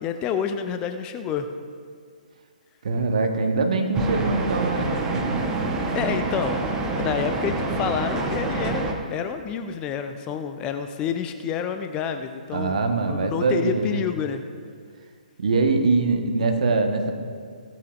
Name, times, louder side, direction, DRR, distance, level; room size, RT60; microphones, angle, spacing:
voice 1, 0.0-1.5 5.9-12.8 13.1-14.4, left 7 dB, 20° left, 8 dB, 0.5 m, -28 dB
voice 2, 2.8-5.4 12.5-14.0 15.4-17.1, right 3 dB, 55° right, 4 dB, 1.3 m, -23 dB
sound 1, 3.9-8.9, right 3 dB, 15° right, 1.1 m, -27 dB
16.5 x 13.5 x 2.5 m, 2.1 s
figure-of-eight pair, 130°, 5 cm